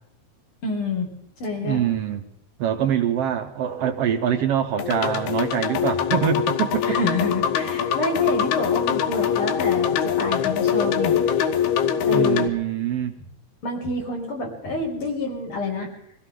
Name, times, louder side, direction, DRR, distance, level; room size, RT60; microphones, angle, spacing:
voice 1, 0.6-1.1 1.4-1.9 6.8-11.3 12.1-12.5 13.6-15.9, left 2 dB, 45° left, 1 dB, 3.2 m, -28 dB
voice 2, 1.6-2.2 2.6-7.0 12.0-13.1, right 9 dB, 70° right, 6 dB, 1.6 m, -24 dB
sound 1, 4.8-12.5, left 8 dB, 75° left, 2.0 m, -23 dB
23.5 x 16.0 x 3.8 m, 0.74 s
omnidirectional pair, 3.5 m